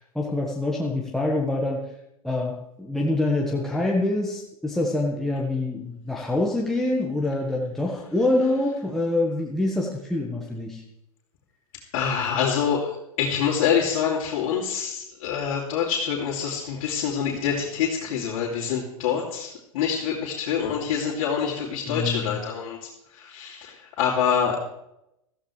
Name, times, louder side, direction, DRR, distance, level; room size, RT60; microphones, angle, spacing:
voice 1, 0.0-1.8 2.2-10.8 21.9-22.3, left 2 dB, ahead, -3 dB, 1.6 m, -25 dB
voice 2, 11.9-24.6, left 7 dB, 55° left, -5 dB, 2.9 m, -26 dB
15.0 x 14.5 x 3.3 m, 0.83 s
hypercardioid pair, 110°, 19 cm